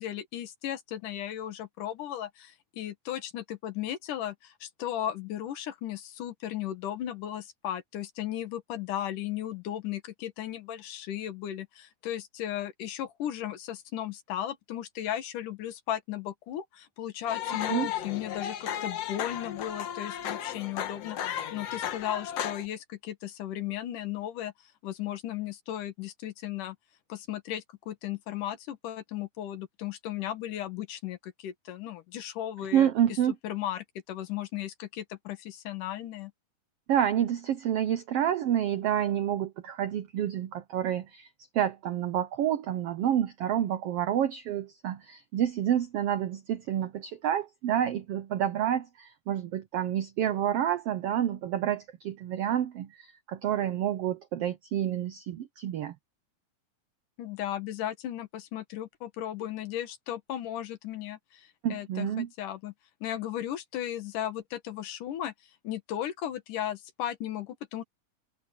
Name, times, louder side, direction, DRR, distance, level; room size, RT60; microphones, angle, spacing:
voice 1, 0.0-24.5 24.8-26.8 27.1-32.9 33.4-36.3 57.2-62.7 63.0-65.3 65.6-67.8, left 11 dB, 75° left, 2.9 m, -36 dB
sound 1, 17.3-22.7, left 10 dB, 60° left, 2.0 m, -34 dB
voice 2, 17.5-17.9 32.7-33.3 36.9-41.3 41.5-55.9 61.6-62.3, right 10 dB, 80° right, 1.3 m, -29 dB
open air
omnidirectional pair, 3.8 m